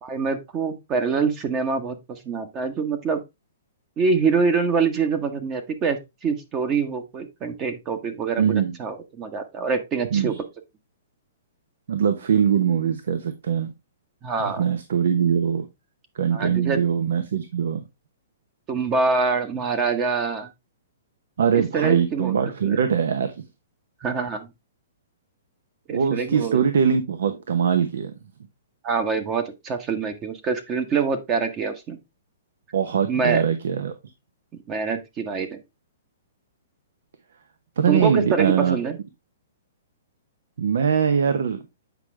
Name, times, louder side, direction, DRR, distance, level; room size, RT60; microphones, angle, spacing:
voice 1, 0.0-3.2 4.0-10.3 14.2-14.6 16.3-16.8 18.7-20.5 21.5-22.3 22.6-22.8 24.0-24.5 25.9-26.6 28.8-32.0 33.1-33.4 34.7-35.6 37.9-39.0, right 5 dB, 25° right, 1.1 m, -25 dB
voice 2, 8.4-8.7 10.1-10.4 11.9-13.7 14.4-15.7 16.1-17.8 21.4-23.3 25.9-28.1 32.7-33.9 37.8-38.8 40.6-41.6, right 7 dB, 75° right, 0.9 m, -22 dB
8.2 x 5.0 x 3.3 m
hypercardioid pair, 150°, 0 cm